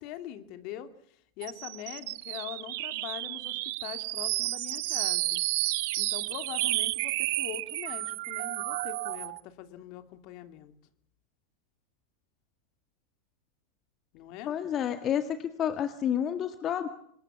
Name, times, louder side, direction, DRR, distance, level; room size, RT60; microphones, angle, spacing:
voice 1, 0.0-5.4 6.0-10.7 14.1-14.5, left 12 dB, 50° left, 10 dB, 2.6 m, -43 dB
sound 1, 1.4-9.4, right 20 dB, 60° right, 1.0 m, -31 dB
voice 2, 14.5-16.9, left 9 dB, 35° left, 9 dB, 1.8 m, -30 dB
26.0 x 20.5 x 7.3 m, 0.69 s
hypercardioid pair, 105°, 0 cm